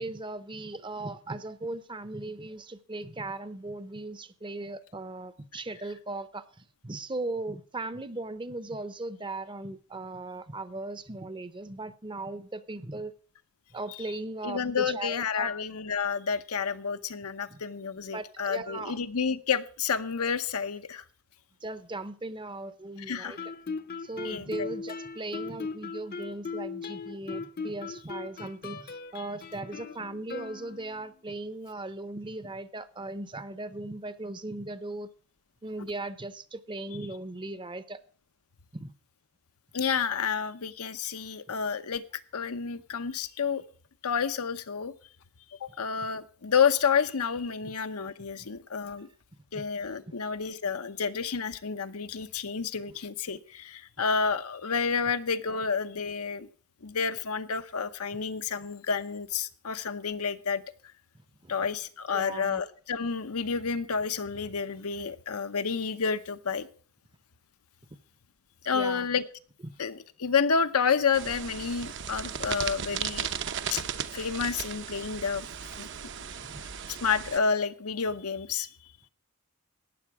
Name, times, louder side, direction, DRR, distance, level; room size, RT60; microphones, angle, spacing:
voice 1, 0.0-13.1 13.7-15.5 17.5-17.6 18.1-19.0 21.6-23.4 24.0-35.1 35.6-38.0 38.7-38.9 47.6-47.7 49.5-49.6 61.4-61.5 62.1-62.6 68.7-69.1 69.6-69.7 76.4-76.6, right 2 dB, 20° right, 0.7 m, -38 dB
voice 2, 14.4-21.0 23.1-23.4 24.2-24.7 39.7-42.0 42.3-43.6 44.0-44.9 45.6-49.1 49.5-56.5 56.8-60.6 61.5-66.7 68.6-69.2 69.8-73.3 73.7-73.8 74.1-75.5 75.8-75.9 76.9-78.7, left 6 dB, 85° left, 0.9 m, -30 dB
Guitar, 23.4-31.1, left 4 dB, 45° left, 0.7 m, -39 dB
sound 1, 71.1-77.4, right 7 dB, 55° right, 0.8 m, -36 dB
14.5 x 9.5 x 4.8 m
head